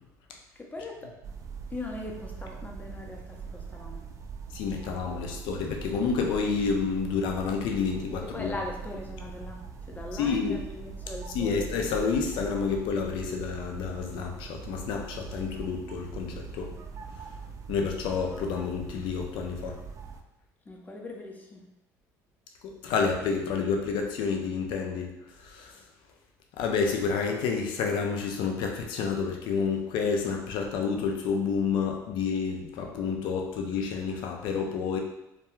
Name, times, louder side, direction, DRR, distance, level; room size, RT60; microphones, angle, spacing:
voice 1, 0.6-1.1 1.7-4.0 5.2-5.4 8.2-11.7 20.7-21.6, left 2 dB, 20° left, 0 dB, 0.6 m, -40 dB
sound 1, 1.2-20.2, right 5 dB, 40° right, 0.3 m, -42 dB
voice 2, 4.5-8.5 10.2-10.6 11.3-16.7 17.7-19.8 22.6-25.1 25.4-25.8 26.6-35.0, left 5 dB, 65° left, 2 dB, 0.5 m, -29 dB
2.3 x 2.2 x 3.0 m, 0.89 s
hypercardioid pair, 65°, 9 cm